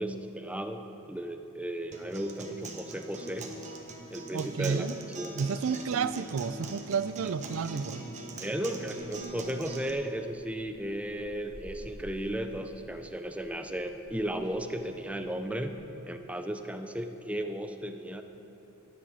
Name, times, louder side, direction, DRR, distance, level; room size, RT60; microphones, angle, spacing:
voice 1, 0.0-3.5 4.1-5.3 8.4-15.8 16.1-18.2, right 1 dB, 5° right, 7 dB, 0.6 m, -35 dB
Acoustic guitar, 1.9-9.9, right 2 dB, 35° right, 1.2 m, -42 dB
voice 2, 4.3-4.9 5.4-8.0, right 6 dB, 70° right, 14 dB, 0.4 m, -31 dB
sound 1, 8.9-15.7, equal, 35° left, 2.5 m, -53 dB
12.0 x 10.5 x 6.2 m, 3.0 s
head